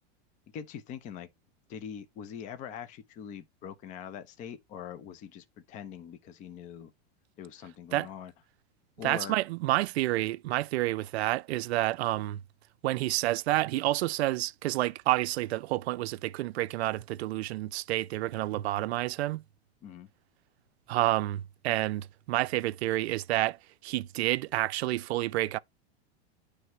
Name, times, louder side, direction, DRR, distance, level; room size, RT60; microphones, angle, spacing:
voice 1, 0.5-1.3 1.7-6.9 7.4-8.3 9.0-9.3 19.8-20.1, left 8 dB, 25° left, 0.5 m, -43 dB
voice 2, 9.0-12.4 12.8-19.4 20.9-23.6 23.8-25.6, right 16 dB, 85° right, 0.5 m, -29 dB
9.3 x 3.3 x 3.1 m
supercardioid pair, 150°, 31 cm